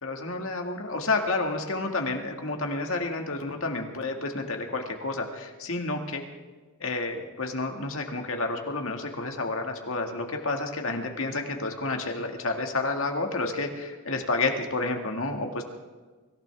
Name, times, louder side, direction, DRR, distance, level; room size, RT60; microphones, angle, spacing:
voice 1, 0.0-6.2 6.8-15.6, left 3 dB, 65° left, 3 dB, 2.0 m, -30 dB
25.0 x 16.0 x 3.6 m, 1.4 s
head